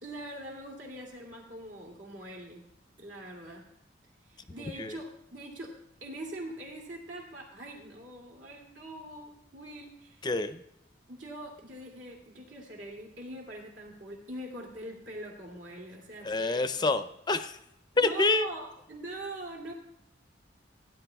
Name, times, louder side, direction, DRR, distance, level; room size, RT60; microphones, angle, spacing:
voice 1, 0.0-2.6 3.0-3.6 4.3-5.7 6.0-10.2 11.1-16.9 17.9-19.7, right 1 dB, 75° right, -1 dB, 2.6 m, -43 dB
voice 2, 4.6-5.0 10.2-10.6 16.2-17.6 18.0-18.5, left 3 dB, 25° left, 11 dB, 0.5 m, -27 dB
16.0 x 10.5 x 2.3 m, 0.81 s
head